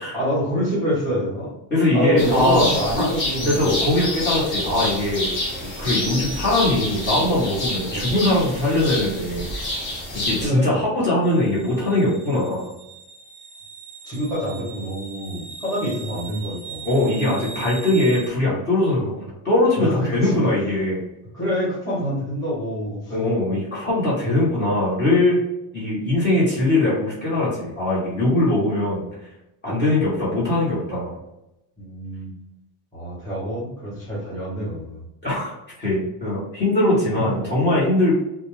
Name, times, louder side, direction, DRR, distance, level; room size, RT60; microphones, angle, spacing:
voice 1, 0.1-1.5 1.9-3.8 7.9-8.2 10.4-10.8 14.0-16.9 19.8-20.4 21.3-23.2 31.8-32.3 32.9-35.0 37.2-37.5, equal, 10° left, -11 dB, 1.2 m, -26 dB
voice 2, 1.7-3.1 3.4-5.3 5.6-9.7 10.1-12.7 16.8-21.0 23.1-25.4 25.7-29.0 29.6-31.2 35.2-35.5 35.8-38.2, left 1 dB, 25° left, -8 dB, 1.3 m, -21 dB
sound 1, 2.2-10.5, left 1 dB, 45° left, 0.9 m, -28 dB
sound 2, 11.2-18.3, right 4 dB, 20° right, 0.4 m, -40 dB
2.7 x 2.3 x 3.1 m, 0.89 s
cardioid pair, 170°, 44 cm